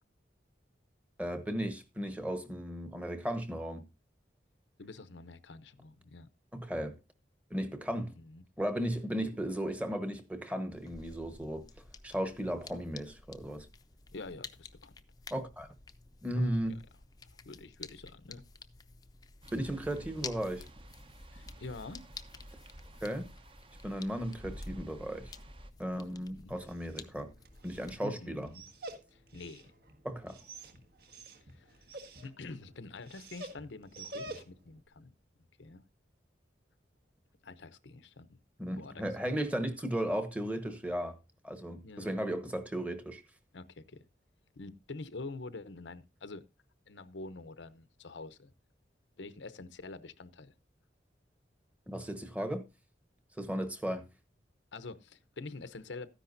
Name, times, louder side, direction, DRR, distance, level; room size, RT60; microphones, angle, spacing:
voice 1, 1.2-3.8 6.5-7.0 7.5-8.1 8.6-11.6 12.0-13.7 15.3-15.7 16.2-16.7 19.5-20.7 23.0-23.3 23.8-25.3 25.8-27.3 27.6-28.5 30.0-30.4 38.6-41.2 41.4-43.2 51.9-52.7 53.4-54.0, equal, 10° right, 1.1 m, -35 dB
voice 2, 4.8-6.3 8.0-8.4 14.1-14.9 16.3-16.8 17.4-18.5 21.3-22.0 25.9-26.6 28.0-28.6 29.1-29.7 31.5-31.8 32.2-35.1 35.6-35.8 37.4-38.4 38.7-39.0 39.6-39.7 41.8-42.1 43.5-44.0 44.6-46.4 46.9-48.5 49.2-50.5 54.7-56.1, left 3 dB, 80° left, 0.8 m, -46 dB
sound 1, 10.7-28.1, left 5 dB, 20° left, 0.6 m, -52 dB
sound 2, 19.4-25.7, equal, 30° right, 0.8 m, -50 dB
Dog, 26.5-34.8, right 2 dB, 55° right, 1.6 m, -49 dB
13.5 x 10.0 x 2.6 m
head